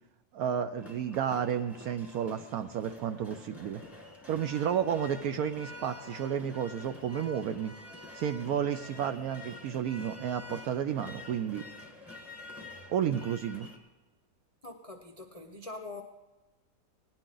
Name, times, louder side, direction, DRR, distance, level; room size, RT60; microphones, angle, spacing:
voice 1, 0.3-3.8 4.3-7.7 8.1-11.7 12.9-13.7, right 8 dB, 70° right, 9 dB, 0.9 m, -32 dB
sound 1, 0.8-13.8, left 2 dB, ahead, 1.2 m, -48 dB
voice 2, 14.6-16.0, left 2 dB, 55° left, 3 dB, 0.4 m, -43 dB
17.5 x 10.5 x 3.8 m, 1.2 s
omnidirectional pair, 1.9 m